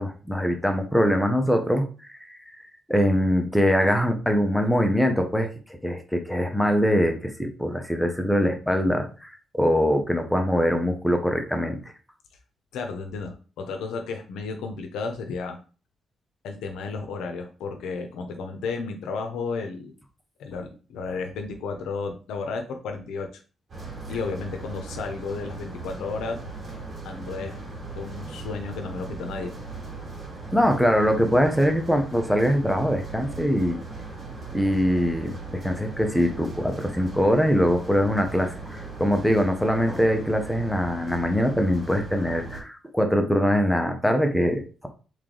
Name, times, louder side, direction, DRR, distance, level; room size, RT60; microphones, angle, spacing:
voice 1, 0.0-2.6 2.9-5.5 5.8-11.8 30.5-33.8 34.5-44.9, equal, 5° left, 4 dB, 0.8 m, -23 dB
voice 2, 12.7-15.6 16.4-19.9 20.4-23.3 24.1-26.4 27.0-27.6 27.9-29.5, left 4 dB, 90° left, 4 dB, 0.7 m, -33 dB
sound 1, 23.7-42.6, right 3 dB, 50° right, 2.4 m, -38 dB
3.6 x 3.2 x 3.8 m, 0.36 s
cardioid pair, 100°, 0 cm